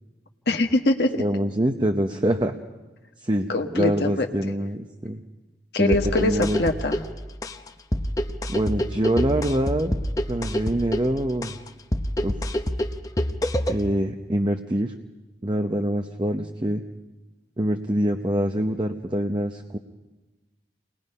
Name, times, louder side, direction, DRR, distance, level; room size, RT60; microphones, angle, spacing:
voice 1, 0.5-1.2 3.5-4.3 5.7-7.0, left 2 dB, 70° left, 4 dB, 1.4 m, -23 dB
voice 2, 1.2-2.6 3.2-3.5 3.7-5.2 5.8-6.6 8.5-9.9 10.3-11.5 12.2-12.5 13.7-14.9 15.4-16.8 17.6-19.8, right 1 dB, 25° right, 5 dB, 0.8 m, -25 dB
sound 1, 5.9-13.9, left 1 dB, 20° left, 0.8 m, -27 dB
29.0 x 20.5 x 5.5 m, 1.2 s
head